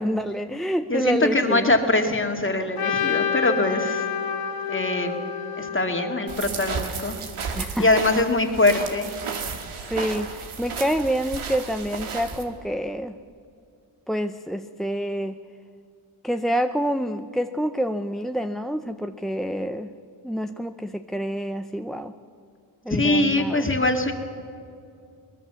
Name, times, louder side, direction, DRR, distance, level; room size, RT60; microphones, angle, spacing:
voice 1, 0.0-1.7 7.5-8.1 9.8-13.1 14.1-15.4 16.2-19.9 20.2-22.1 22.8-23.7, equal, ahead, 9 dB, 0.5 m, -27 dB
voice 2, 0.9-4.0 4.7-5.2 5.6-7.2 7.8-9.1 22.9-24.1, left 2 dB, 25° left, 4 dB, 2.3 m, -22 dB
Trumpet, 2.8-6.9, left 8 dB, 45° left, 2.5 m, -29 dB
sound 1, 6.3-12.4, right 5 dB, 80° right, 2.2 m, -33 dB
22.5 x 20.0 x 7.0 m, 2.4 s
cardioid pair, 85°, 48 cm